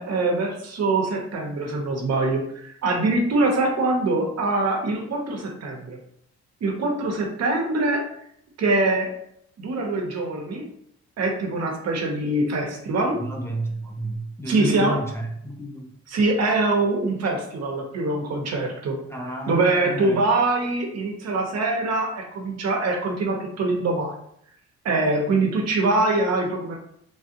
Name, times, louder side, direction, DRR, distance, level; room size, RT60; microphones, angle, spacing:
voice 1, 0.0-6.0 6.6-8.0 8.6-9.1 9.6-10.6 11.2-13.2 14.5-15.0 16.1-19.0 19.5-24.1 24.8-26.8, right 2 dB, 60° right, 1 dB, 0.8 m, -23 dB
voice 2, 13.2-15.9 19.1-19.6 19.9-20.2, right 1 dB, 10° left, 0 dB, 0.4 m, -31 dB
3.4 x 2.3 x 2.8 m, 0.70 s
cardioid pair, 90°, 30 cm